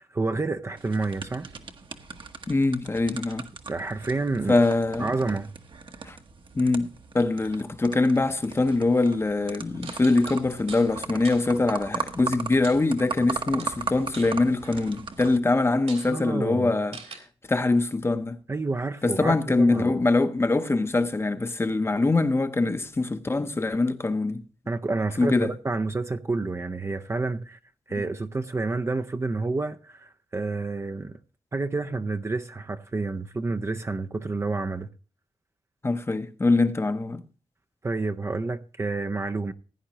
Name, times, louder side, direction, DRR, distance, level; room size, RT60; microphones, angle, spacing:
voice 1, 0.0-1.5 3.7-4.6 5.0-5.5 16.1-16.7 18.5-20.0 24.7-27.6 27.9-31.2 31.5-34.9 37.8-39.5, right 3 dB, 25° right, 0.6 m, -29 dB
sound 1, 0.8-15.4, right 5 dB, 50° right, 1.1 m, -38 dB
voice 2, 2.5-3.4 4.5-5.2 6.1-6.2 6.5-17.0 17.5-18.4 19.0-24.4 25.2-25.5 35.8-37.2, left 2 dB, 25° left, 0.8 m, -23 dB
sound 2, 9.8-10.9 11.2-11.5 12.6-13.3 13.6-15.0 15.4-15.5 15.9-16.1 16.9-17.2, right 4 dB, 85° right, 3.3 m, -43 dB
16.0 x 9.9 x 2.9 m
wide cardioid pair, 130°, 11 cm